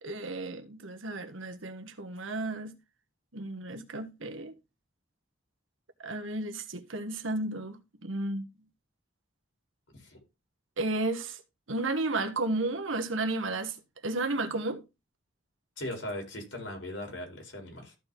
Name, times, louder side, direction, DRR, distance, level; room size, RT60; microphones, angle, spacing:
voice 1, 0.0-2.7 3.3-4.5 6.0-8.5 10.8-11.4 11.7-13.8 14.0-14.8, right 2 dB, 85° right, 1.4 m, -33 dB
voice 2, 15.8-18.0, left 1 dB, 75° left, 4.3 m, -39 dB
14.0 x 4.6 x 3.9 m
head